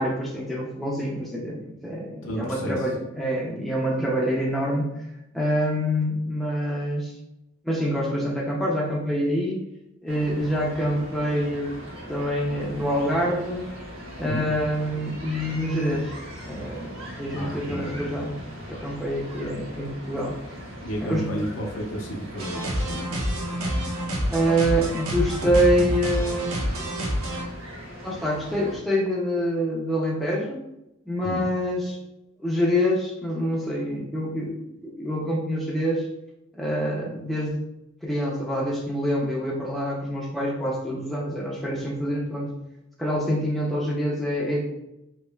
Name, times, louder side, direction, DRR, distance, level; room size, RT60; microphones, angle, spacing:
voice 1, 0.0-4.9 5.3-7.1 7.6-9.6 10.0-11.7 12.1-13.6 14.2-16.1 16.4-18.4 18.7-20.4 21.0-21.3 24.3-26.5 28.0-30.6 31.1-32.0 32.4-36.1 36.5-37.6 38.0-42.6 43.0-44.6, equal, ahead, -4 dB, 0.4 m, -26 dB
voice 2, 2.2-2.9 14.1-14.6 17.4-18.1 20.8-23.1 31.2-31.5, equal, 65° left, -1 dB, 0.7 m, -32 dB
sound 1, 10.1-28.8, equal, 70° right, 1.1 m, -40 dB
sound 2, 22.4-27.4, equal, 90° right, 0.7 m, -28 dB
3.1 x 2.7 x 2.2 m, 0.88 s
head